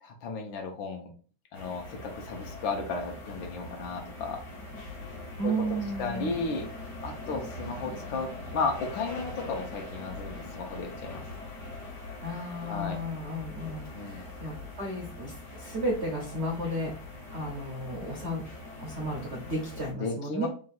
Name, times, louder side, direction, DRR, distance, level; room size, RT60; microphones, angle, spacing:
voice 1, 0.0-1.1 1.5-4.4 5.4-5.5 6.0-6.7 7.0-11.2 12.7-13.0 13.9-14.2 20.0-20.5, left 4 dB, 75° left, 3 dB, 1.5 m, -34 dB
sound 1, 1.5-19.9, left 2 dB, 55° left, 1.4 m, -42 dB
voice 2, 5.4-6.3 12.2-16.9 17.3-18.4 18.8-20.5, right 1 dB, 65° right, -1 dB, 0.6 m, -33 dB
3.8 x 2.5 x 4.2 m, 0.42 s
omnidirectional pair, 2.3 m